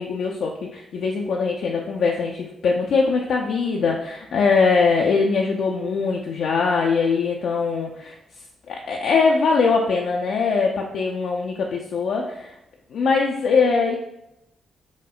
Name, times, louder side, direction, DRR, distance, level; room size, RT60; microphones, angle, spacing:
voice 1, 0.0-8.1 8.7-12.6 12.9-14.0, left 4 dB, 65° left, -1 dB, 0.3 m, -22 dB
4.9 x 2.0 x 2.3 m, 0.84 s
hypercardioid pair, 40°, 0 cm